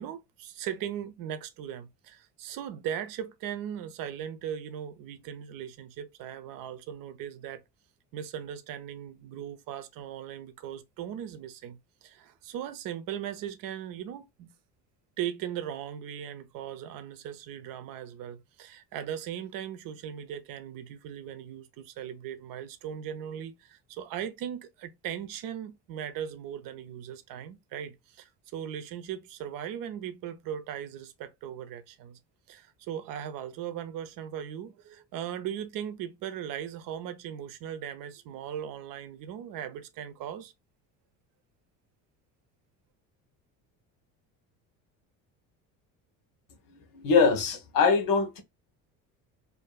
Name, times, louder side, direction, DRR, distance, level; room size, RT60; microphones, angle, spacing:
voice 1, 0.0-7.6 8.1-14.5 15.2-32.2 32.5-40.5, right 9 dB, 60° right, 0.7 m, -38 dB
voice 2, 46.9-48.4, left 5 dB, 60° left, 1.0 m, -23 dB
2.6 x 2.6 x 2.2 m
supercardioid pair, 90°, 38 cm